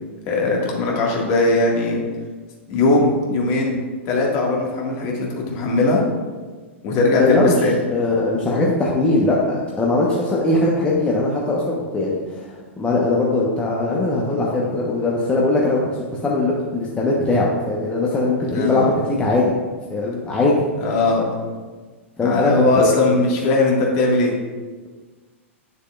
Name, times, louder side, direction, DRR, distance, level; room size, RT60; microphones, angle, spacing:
voice 1, 0.3-2.0 2.7-3.8 4.1-6.0 6.8-7.8 18.5-18.9 20.8-21.3 22.2-24.3, left 2 dB, 40° left, -2 dB, 1.8 m, -19 dB
voice 2, 7.2-7.6 7.9-19.5 19.9-20.7 22.2-23.0, left 2 dB, 15° left, -4 dB, 1.0 m, -20 dB
9.6 x 6.7 x 2.4 m, 1.4 s
figure-of-eight pair, 105°, 7 cm